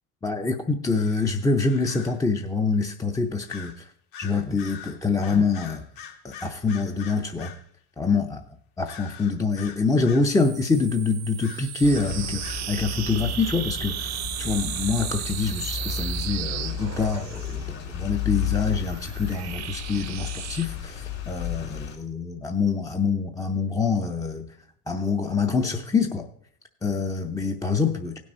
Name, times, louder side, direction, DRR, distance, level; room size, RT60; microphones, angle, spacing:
voice 1, 0.2-3.9 4.2-5.8 6.2-7.5 8.0-8.4 8.8-24.5 24.9-26.3 26.8-28.2, left 4 dB, 10° left, 4 dB, 0.5 m, -25 dB
sound 1, 1.0-2.2 3.5-3.8 4.1-7.6 8.9-10.4 11.4-12.7, left 8 dB, 65° left, 1.8 m, -43 dB
sound 2, 10.3-17.6 18.5-20.7, right 13 dB, 35° right, 0.6 m, -35 dB
sound 3, 11.8-22.0, left 8 dB, 85° left, 3.4 m, -33 dB
16.5 x 6.2 x 4.3 m, 0.63 s
supercardioid pair, 100°, 47 cm